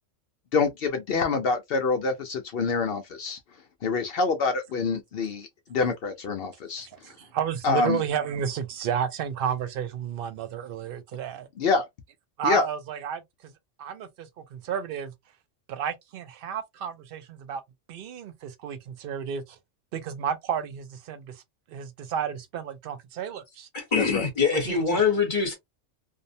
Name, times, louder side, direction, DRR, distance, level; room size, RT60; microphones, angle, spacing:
voice 1, 0.5-3.4 3.8-6.9 7.6-8.0 11.6-11.8 12.4-12.7 23.9-24.3, left 4 dB, 60° left, 0.7 m, -26 dB
voice 2, 6.9-11.5 12.4-13.5 13.8-15.1 15.7-17.6 17.9-19.6 19.9-21.4 21.7-23.7 24.5-25.0, right 8 dB, 60° right, 0.6 m, -32 dB
voice 3, 23.7-25.6, left 5 dB, 40° left, 1.1 m, -24 dB
2.6 x 2.0 x 2.5 m
omnidirectional pair, 1.3 m